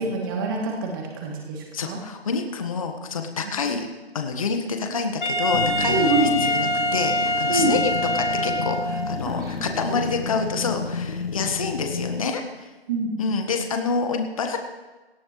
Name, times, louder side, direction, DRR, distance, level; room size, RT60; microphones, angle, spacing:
voice 1, 0.0-2.0 3.4-3.5 5.9-6.3 7.5-7.7 9.3-9.5 9.9-10.0 12.9-13.1, right 3 dB, 20° right, -1 dB, 2.8 m, -26 dB
voice 2, 1.7-3.9 4.1-6.1 6.4-12.7 13.2-14.6, left 4 dB, 35° left, 5 dB, 1.5 m, -27 dB
Wind instrument woodwind instrument, 5.2-9.1, left 1 dB, 50° left, 2.8 m, -24 dB
sound 1, 5.5-12.3, left 4 dB, 75° left, 1.3 m, -31 dB
18.5 x 17.0 x 3.2 m, 1.2 s
figure-of-eight pair, 155°, 31 cm